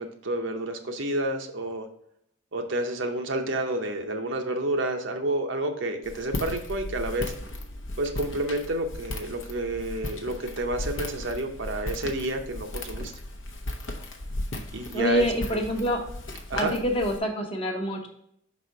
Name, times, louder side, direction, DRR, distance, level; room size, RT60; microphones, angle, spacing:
voice 1, 0.0-1.9 2.5-7.3 8.0-13.1 14.7-15.7 16.5-16.8, right 1 dB, 60° right, 5 dB, 0.7 m, -30 dB
Walk footsteps, 6.0-17.2, left 1 dB, 65° left, 0.7 m, -36 dB
voice 2, 14.9-16.0 16.6-18.1, equal, 25° left, 2 dB, 0.9 m, -26 dB
5.5 x 4.1 x 4.6 m, 0.71 s
head